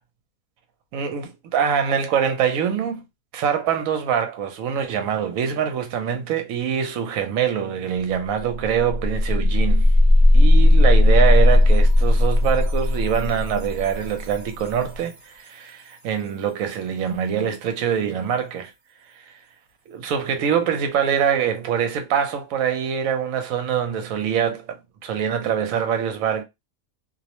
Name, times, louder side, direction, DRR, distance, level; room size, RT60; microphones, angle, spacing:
voice 1, 0.9-3.0 3.3-9.9 10.3-18.7 19.9-26.4, right 8 dB, 75° right, 1.0 m, -24 dB
sound 1, 8.0-8.1 8.4-15.2, left 1 dB, 60° right, 1.2 m, -17 dB
2.5 x 2.0 x 2.9 m
omnidirectional pair, 1.5 m